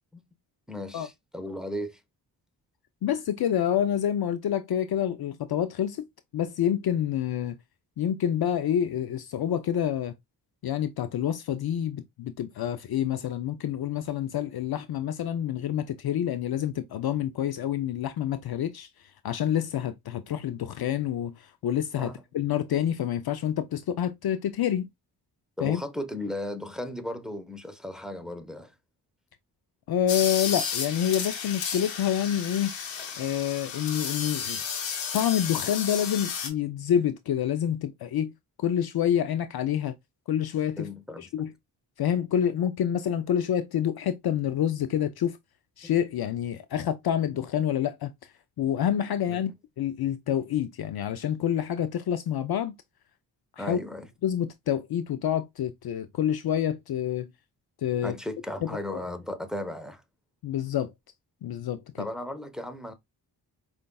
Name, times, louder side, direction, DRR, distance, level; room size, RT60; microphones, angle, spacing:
voice 1, 0.7-2.0 22.0-22.2 25.6-28.7 40.8-41.3 49.3-49.5 53.6-54.1 58.0-60.0 62.0-62.9, left 1 dB, ahead, 0.8 m, -35 dB
voice 2, 3.0-6.0 6.3-7.6 8.0-10.1 10.6-18.9 19.2-24.9 25.6-25.8 29.9-32.8 33.2-34.6 35.1-38.3 38.6-39.9 40.3-40.9 41.2-41.5 42.0-45.4 45.8-48.1 48.6-49.5 49.8-52.7 53.6-53.8 54.2-57.3 57.8-58.2 58.9-59.0 60.4-60.9 61.4-62.1, left 10 dB, 55° left, 0.5 m, -27 dB
sound 1, 30.1-36.5, left 6 dB, 80° left, 0.9 m, -33 dB
4.9 x 2.4 x 2.3 m
supercardioid pair, 45°, 44 cm